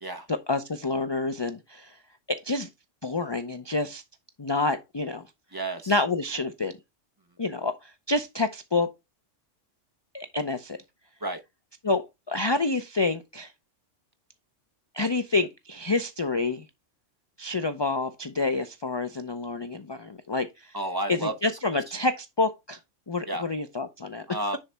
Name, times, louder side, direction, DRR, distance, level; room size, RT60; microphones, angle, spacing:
voice 1, 0.3-2.0 2.3-2.7 3.0-4.0 4.4-5.2 5.9-6.7 7.4-8.9 10.1-10.8 11.8-13.5 14.9-16.7 17.4-20.7 21.4-22.8 23.1-24.3, left 3 dB, 30° left, 0.5 m, -28 dB
voice 2, 5.5-6.0 11.2-11.4 20.7-21.6 21.9-22.0 23.3-23.5 24.3-24.6, right 1 dB, 20° right, 1.0 m, -32 dB
10.0 x 4.1 x 3.4 m
omnidirectional pair, 1.3 m